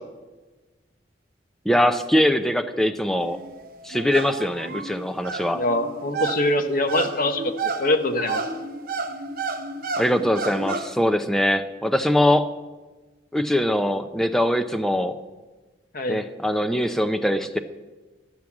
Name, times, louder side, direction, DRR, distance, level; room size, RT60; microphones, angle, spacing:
voice 1, 1.6-3.4 3.8-5.6 10.0-12.5 13.3-15.2 16.1-17.6, left 1 dB, ahead, 7 dB, 0.5 m, -22 dB
sound 1, 3.2-10.9, right 4 dB, 50° right, 0.6 m, -32 dB
voice 2, 5.5-7.5 7.8-8.4 15.9-16.2, left 1 dB, 50° left, 7 dB, 0.9 m, -23 dB
12.0 x 6.3 x 7.2 m, 1.2 s
head